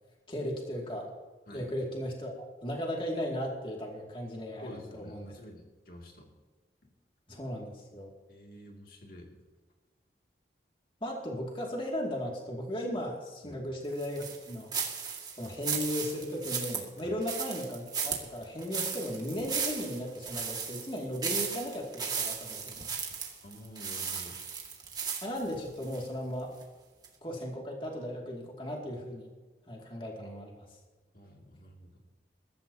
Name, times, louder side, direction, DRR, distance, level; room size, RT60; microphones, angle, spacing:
voice 1, 0.3-1.1 1.5-5.3 7.3-8.1 11.0-14.7 15.4-22.9 25.2-26.5 27.2-29.3 29.7-30.6, equal, 30° left, -1 dB, 2.4 m, -36 dB
voice 2, 4.5-6.3 6.8-6.9 8.3-9.3 13.4-13.6 17.0-17.2 23.4-24.4 31.1-32.0, left 1 dB, 55° left, 0 dB, 2.5 m, -49 dB
sound 1, 14.0-26.1 26.5-26.6 27.0-27.1, right 6 dB, 25° right, 2.1 m, -35 dB
22.0 x 13.5 x 2.9 m, 1.3 s
head